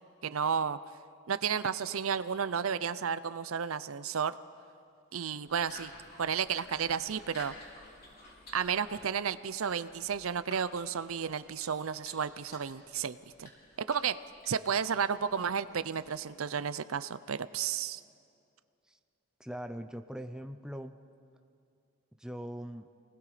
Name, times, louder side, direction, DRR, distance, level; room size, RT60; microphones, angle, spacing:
voice 1, 0.2-0.8 1.3-4.4 5.1-5.9 6.2-7.6 8.5-13.5 13.8-14.2 14.5-18.0, right 7 dB, 80° right, 15 dB, 0.6 m, -32 dB
sound 1, 5.5-16.3, left 2 dB, 50° left, 4.9 m, -53 dB
voice 2, 19.4-20.9 22.2-22.9, equal, 5° right, 7 dB, 0.6 m, -41 dB
29.0 x 20.0 x 5.0 m, 2.4 s
head